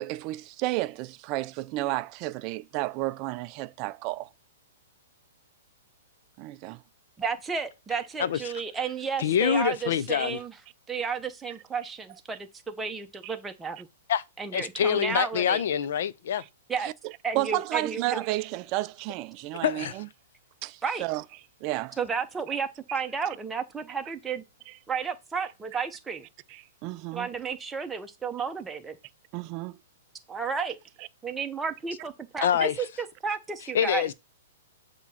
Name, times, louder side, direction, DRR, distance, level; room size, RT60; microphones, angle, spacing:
voice 1, 0.0-4.3 6.4-6.8 13.2-13.3 16.8-20.1 20.6-21.2 21.6-22.0 22.9-23.0 24.7-24.8 25.7-25.8 26.5-27.3 29.3-29.8, right 18 dB, 35° right, 0.4 m, -32 dB
voice 2, 7.2-10.5 10.9-13.9 14.4-15.6 16.7-16.9 17.2-18.2 20.8-21.0 22.0-24.4 24.9-26.3 27.1-29.0 30.3-30.8 31.2-34.0, right 5 dB, 10° right, 0.8 m, -32 dB
voice 3, 8.2-8.5 9.2-10.4 14.1-14.2 14.5-16.4 19.6-19.9 32.4-32.8 33.7-34.1, left 9 dB, 65° left, 0.6 m, -25 dB
7.2 x 2.9 x 5.6 m
hypercardioid pair, 155°, 0 cm